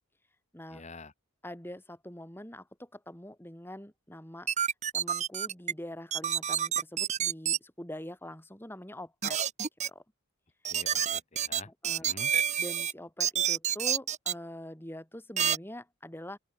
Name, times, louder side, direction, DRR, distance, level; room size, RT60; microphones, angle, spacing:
voice 1, 0.7-1.1 10.6-12.3, left 3 dB, 30° left, 1.6 m, -48 dB
voice 2, 1.4-4.5 4.9-9.4 9.9-10.0 11.7-12.1 12.6-16.4, left 1 dB, 10° left, 4.6 m, -44 dB
sound 1, 4.5-5.7 6.1-7.6 9.2-9.9 10.6-12.9 13.2-14.3 15.4-15.6, right 9 dB, 35° right, 1.1 m, -28 dB
open air
head